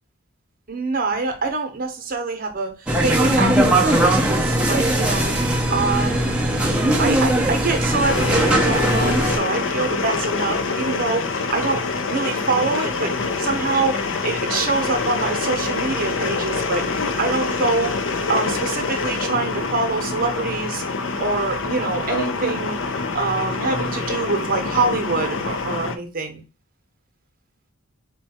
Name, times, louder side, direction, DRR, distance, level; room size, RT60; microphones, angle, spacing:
voice 1, 0.7-6.5 7.0-11.8 12.1-13.1 13.4-14.0 14.2-16.8 17.2-18.0 18.3-20.8 21.2-22.8 23.1-26.4, right 3 dB, 40° right, 6 dB, 0.9 m, -25 dB
sound 1, 2.9-9.4, right 1 dB, 5° right, 0.6 m, -19 dB
sound 2, 8.0-26.0, left 4 dB, 60° left, 0.5 m, -25 dB
4.3 x 2.3 x 4.2 m, 0.29 s
head